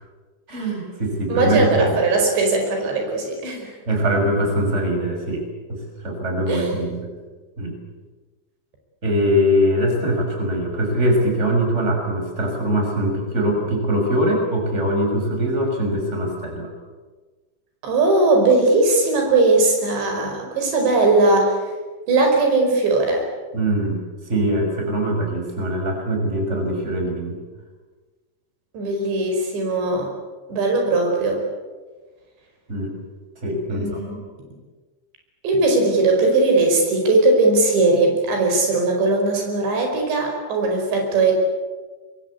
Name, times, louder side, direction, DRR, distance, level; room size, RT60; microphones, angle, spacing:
voice 1, 0.5-2.0 3.9-5.4 5.7-7.1 7.6-7.7 9.0-16.7 23.5-27.4 32.7-33.0 33.4-34.0, equal, 15° right, 2 dB, 6.2 m, -22 dB
voice 2, 1.3-3.7 6.5-6.7 17.8-21.6 22.1-23.3 28.7-30.1 30.5-31.4 33.7-34.2 35.4-41.3, right 3 dB, 85° right, 2 dB, 7.2 m, -19 dB
26.5 x 22.5 x 8.5 m, 1.3 s
omnidirectional pair, 4.9 m